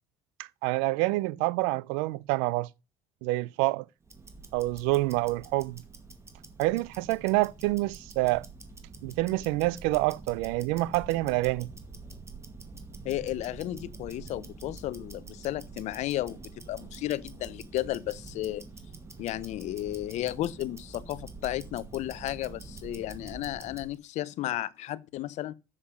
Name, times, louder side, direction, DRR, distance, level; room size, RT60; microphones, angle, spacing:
voice 1, 0.6-2.7 3.2-3.8 4.5-5.8 6.6-8.5 9.0-11.7, right 20 dB, 85° right, 0.5 m, -27 dB
Tick-tock, 4.0-24.0, right 3 dB, 20° right, 2.1 m, -46 dB
voice 2, 13.0-18.6 19.2-25.5, left 14 dB, 65° left, 0.7 m, -33 dB
7.4 x 6.7 x 5.1 m
supercardioid pair, 85°, 13 cm